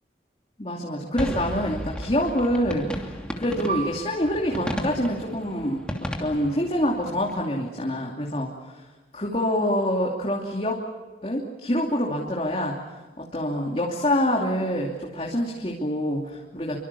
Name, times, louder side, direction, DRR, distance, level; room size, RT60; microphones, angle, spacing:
voice 1, 0.6-5.8 6.2-8.5 9.1-10.8 11.2-12.8 13.2-16.8, equal, 35° left, -1 dB, 2.8 m, -26 dB
sound 1, 1.2-7.5, equal, 5° left, 2.8 m, -34 dB
Piano, 3.7-8.7 9.1-9.2 10.0-10.4, right 5 dB, 40° right, 4.0 m, -39 dB
28.5 x 24.5 x 7.1 m, 1.3 s
head